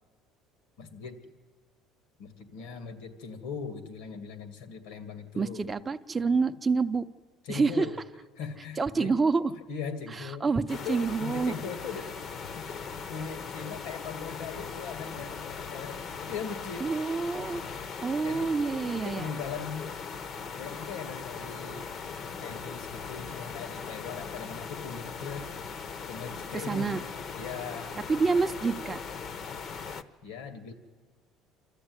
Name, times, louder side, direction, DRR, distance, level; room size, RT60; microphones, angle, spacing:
voice 1, 0.8-1.2 2.2-5.7 7.4-7.9 8.4-9.2 9.7-12.2 12.5-12.7 13.1-16.9 18.2-18.5 19.0-19.9 20.6-21.9 22.4-25.5 26.1-26.9 27.4-28.0 30.2-30.7, left 6 dB, 85° left, 9 dB, 2.5 m, -39 dB
voice 2, 5.4-7.0 7.5-7.9 8.8-9.4 10.4-11.6 16.8-17.6 18.0-19.3 26.7-27.0 28.1-29.0, right 4 dB, 15° right, 8 dB, 0.7 m, -27 dB
sound 1, 10.7-30.0, left 5 dB, 40° left, 0.9 m, -39 dB
26.0 x 13.5 x 9.7 m, 1.5 s
cardioid pair, 140°, 0 cm